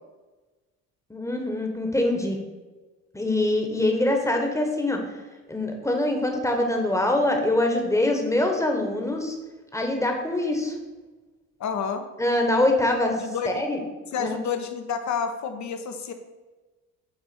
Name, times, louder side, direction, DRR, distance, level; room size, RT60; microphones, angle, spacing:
voice 1, 1.1-2.4 3.1-5.0 5.5-9.3 9.7-10.7 12.2-13.1 13.4-13.8 14.2-14.4, left 1 dB, 5° left, 3 dB, 1.3 m, -24 dB
voice 2, 11.6-12.0 13.2-13.7 14.1-16.1, left 6 dB, 35° left, 7 dB, 0.9 m, -29 dB
7.2 x 4.3 x 5.3 m, 1.2 s
figure-of-eight pair, 50°, 48 cm